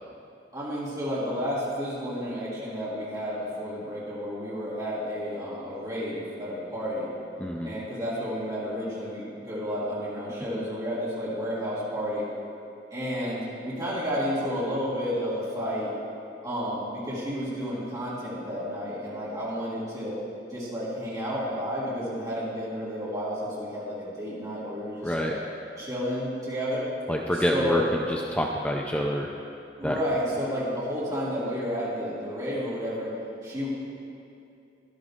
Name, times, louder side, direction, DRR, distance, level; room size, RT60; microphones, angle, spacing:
voice 1, 0.5-7.1 7.6-12.3 12.9-15.9 16.4-20.2 20.5-25.3 25.8-26.8 27.5-27.9 29.8-33.1 33.4-33.7, equal, 20° right, -10 dB, 2.9 m, -31 dB
voice 2, 7.4-7.7 25.0-25.3 27.1-29.3 29.8-30.0, equal, 5° left, 0 dB, 0.5 m, -27 dB
13.5 x 11.5 x 3.7 m, 2.6 s
head